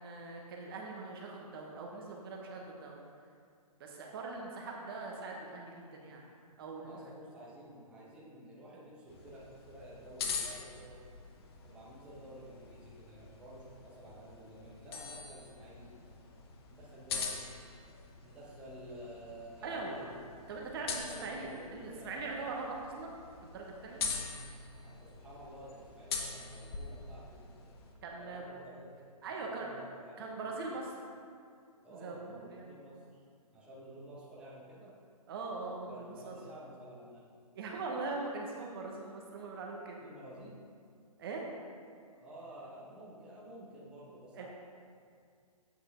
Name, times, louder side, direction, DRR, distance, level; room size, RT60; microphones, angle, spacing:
voice 1, 0.0-3.0 3.8-6.2 6.6-7.1 19.6-20.1 20.5-23.1 23.4-24.1 28.0-28.4 29.2-29.7 30.2-31.0 31.9-32.7 35.3-36.4 37.5-40.0 41.2-41.4 44.3-44.5, right 3 dB, 35° right, 0 dB, 1.1 m, -41 dB
voice 2, 6.8-11.0 11.6-16.0 16.7-17.7 18.2-20.2 20.7-22.2 24.8-27.8 28.2-29.1 29.3-30.6 31.8-33.2 33.5-35.0 35.8-37.3 40.0-40.6 42.1-44.5, right 1 dB, 5° right, -7 dB, 1.1 m, -51 dB
sound 1, 9.1-27.9, left 5 dB, 40° left, 1.0 m, -44 dB
8.1 x 7.8 x 3.7 m, 2.3 s
hypercardioid pair, 145°, 20 cm